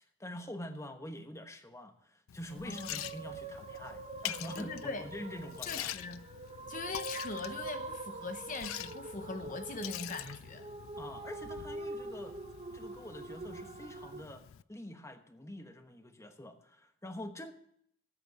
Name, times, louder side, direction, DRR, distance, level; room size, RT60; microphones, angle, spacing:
voice 1, 0.2-5.9 11.0-12.4 12.7-17.5, left 1 dB, 15° left, 7 dB, 1.1 m, -45 dB
Liquid, 2.3-14.6, left 12 dB, 85° left, 0.4 m, -46 dB
sound 1, 2.5-14.2, right 2 dB, 30° right, 1.0 m, -45 dB
voice 2, 2.6-2.9 4.6-5.0 5.7-6.2 6.7-10.7, left 3 dB, 40° left, 8 dB, 0.8 m, -41 dB
12.5 x 8.3 x 6.4 m, 0.69 s
head